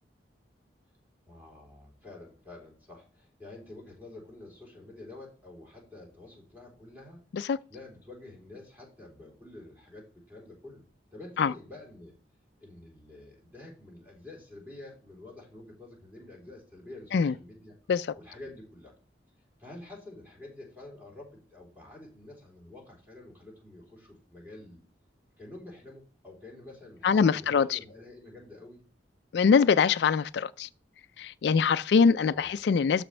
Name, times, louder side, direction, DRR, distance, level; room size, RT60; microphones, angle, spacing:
voice 1, 1.3-7.2 7.7-10.8 11.1-12.2 12.6-17.7 18.2-19.0 19.6-24.8 25.4-28.8 32.3-32.6, left 2 dB, 10° right, 3.7 m, -48 dB
voice 2, 27.0-27.8 29.3-30.7 31.2-33.0, left 6 dB, 65° left, 0.3 m, -23 dB
13.0 x 5.0 x 3.3 m
head